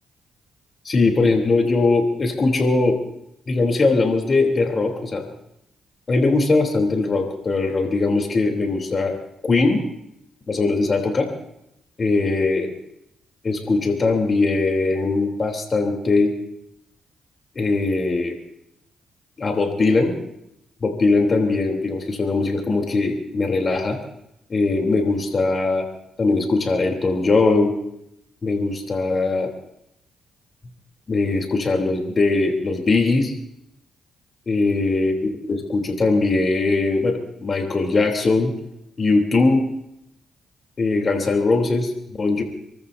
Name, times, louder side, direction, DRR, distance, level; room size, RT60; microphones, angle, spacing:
voice 1, 0.8-3.0 3.5-5.3 6.1-9.1 9.4-9.8 10.5-11.3 12.0-12.7 13.4-16.3 17.5-18.3 19.4-20.1 20.8-24.0 24.5-25.8 26.2-27.7 28.4-29.5 31.1-33.4 34.5-38.5 39.0-39.7 40.8-41.9 42.2-42.4, left 3 dB, 45° left, 2 dB, 3.3 m, -20 dB
28.5 x 14.0 x 2.7 m, 0.82 s
supercardioid pair, 55°, 0 cm